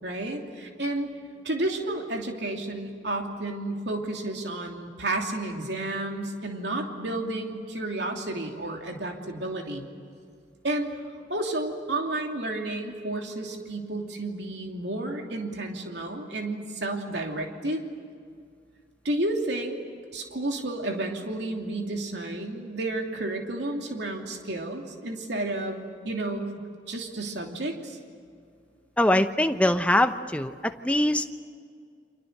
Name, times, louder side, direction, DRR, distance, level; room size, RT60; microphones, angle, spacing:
voice 1, 0.0-1.1 1.4-9.9 10.6-11.0 11.3-17.8 19.0-19.7 20.1-25.8 26.0-28.0, right 2 dB, 75° right, 2 dB, 2.9 m, -31 dB
voice 2, 29.0-31.4, left 1 dB, 5° left, 8 dB, 0.9 m, -23 dB
30.0 x 26.5 x 6.7 m, 2.2 s
head